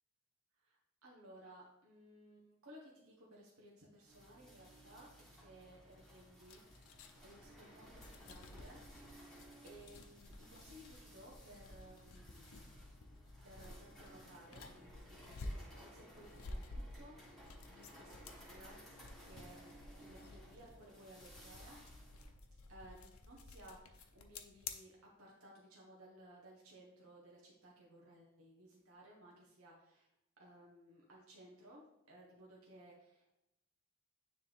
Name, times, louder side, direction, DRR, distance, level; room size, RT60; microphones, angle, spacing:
voice 1, 0.6-9.3 9.6-12.6 13.4-21.8 22.7-30.1 30.4-33.3, right 1 dB, 75° right, -3 dB, 1.1 m, -59 dB
sound 1, 4.1-22.3, equal, ahead, 1.4 m, -59 dB
sound 2, 5.9-24.7, left 2 dB, 75° left, 0.6 m, -53 dB
9.3 x 3.4 x 3.4 m, 0.86 s
head